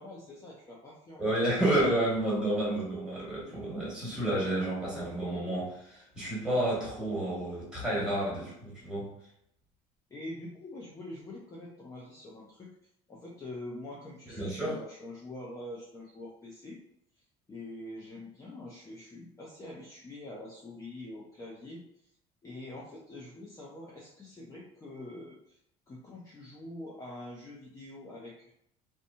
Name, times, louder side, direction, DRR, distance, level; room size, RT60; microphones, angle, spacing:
voice 1, 0.0-1.3 10.1-12.7 13.1-16.8 17.2-17.3 17.5-21.8 22.4-25.6 25.9-28.5, left 1 dB, 20° left, -5 dB, 0.5 m, -45 dB
voice 2, 1.2-9.1 14.3-14.8, right 1 dB, 5° right, -7 dB, 1.4 m, -30 dB
2.9 x 2.1 x 2.6 m, 0.77 s
cardioid pair, 125°, 16 cm